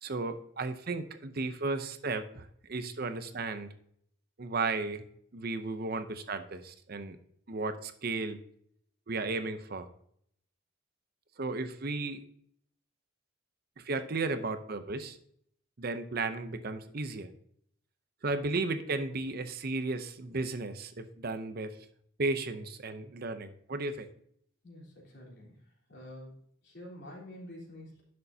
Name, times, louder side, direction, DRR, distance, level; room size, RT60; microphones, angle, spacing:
voice 1, 0.0-3.7 4.4-5.0 5.3-7.2 7.5-8.4 9.1-9.9 11.4-12.2 13.8-15.2 15.8-17.3 18.2-21.8 22.2-24.1, right 3 dB, 50° right, 9 dB, 0.7 m, -34 dB
voice 2, 24.6-26.4 26.6-28.0, left 1 dB, 55° left, -2 dB, 3.5 m, -48 dB
11.0 x 6.6 x 2.7 m, 0.66 s
head